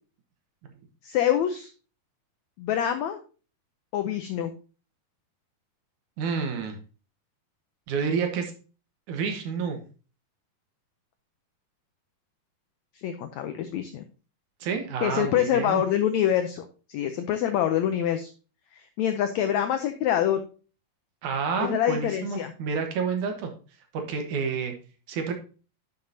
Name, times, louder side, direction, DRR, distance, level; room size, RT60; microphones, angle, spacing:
voice 1, 1.0-1.7 2.6-3.2 3.9-4.5 13.0-14.0 15.0-18.3 18.7-20.4 21.6-22.5, left 10 dB, 85° left, 8 dB, 1.6 m, -26 dB
voice 2, 6.2-6.8 7.9-8.5 9.1-9.8 14.6-15.8 21.2-23.5 23.9-24.7 25.1-25.3, right 5 dB, 70° right, 5 dB, 2.4 m, -29 dB
10.5 x 6.8 x 2.7 m, 0.36 s
omnidirectional pair, 4.0 m